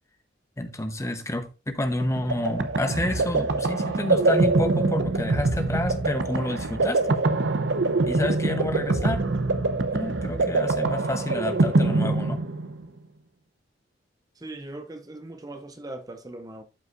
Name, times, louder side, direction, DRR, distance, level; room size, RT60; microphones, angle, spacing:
voice 1, 0.6-7.2 8.1-9.2 9.9-12.4, left 1 dB, 15° left, 0.9 m, -29 dB
sound 1, 2.0-12.9, right 3 dB, 80° right, 0.8 m, -24 dB
voice 2, 14.4-16.6, right 2 dB, 20° right, 0.7 m, -39 dB
12.0 x 5.6 x 2.5 m
head